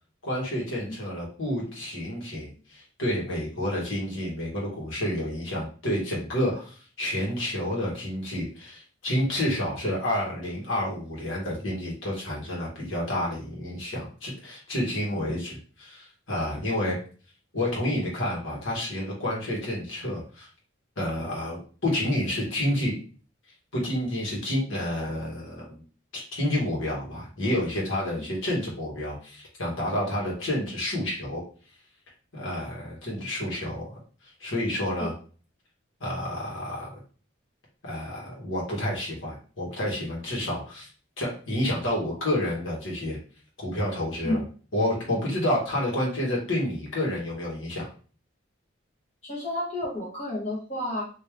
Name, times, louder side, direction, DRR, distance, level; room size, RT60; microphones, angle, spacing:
voice 1, 0.2-17.0 17.5-20.5 21.0-22.9 23.7-25.8 26.1-31.4 32.3-33.9 34.4-35.1 36.0-37.0 37.8-40.9 41.2-43.2 43.6-44.4 44.7-47.9, left 1 dB, 85° left, -3 dB, 1.5 m, -29 dB
voice 2, 49.2-51.0, left 1 dB, 35° left, -6 dB, 1.5 m, -30 dB
3.5 x 2.8 x 3.2 m, 0.39 s
head